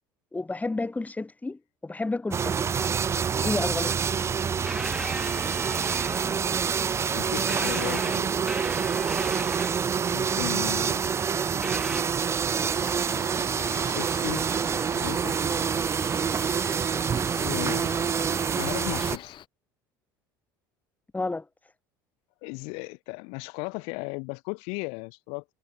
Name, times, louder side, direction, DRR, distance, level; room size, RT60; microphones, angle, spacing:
voice 1, 0.3-2.6 3.4-3.9 21.1-21.5, left 3 dB, 15° left, 2.1 m, -30 dB
sound 1, 2.3-19.2, right 7 dB, 25° right, 0.4 m, -27 dB
sound 2, 4.7-6.6 7.5-10.1 11.6-12.0, right 1 dB, 5° right, 3.1 m, -36 dB
voice 2, 7.1-8.3 10.1-11.2 13.6-14.5 14.7-15.4 17.4-18.1 18.5-19.4 22.4-25.4, left 34 dB, 65° left, 0.9 m, -36 dB
Cricket, 12.7-19.5, left 11 dB, 50° left, 3.6 m, -45 dB
hypercardioid pair, 70°, 11 cm